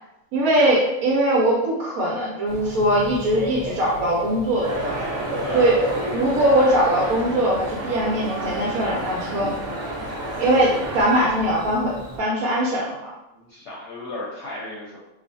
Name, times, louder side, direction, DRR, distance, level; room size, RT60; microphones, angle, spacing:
voice 1, 0.3-4.9 5.5-5.8 6.1-9.5 10.4-13.0, right 1 dB, 85° right, -5 dB, 1.0 m, -21 dB
Bird / Cricket, 2.5-12.2, right 1 dB, 40° right, 0.5 m, -35 dB
sound 1, 4.6-11.0, right 1 dB, 60° right, 1.0 m, -31 dB
voice 2, 5.4-5.8 13.3-15.0, left 2 dB, 65° left, -6 dB, 0.8 m, -34 dB
2.4 x 2.3 x 2.6 m, 0.93 s
omnidirectional pair, 1.5 m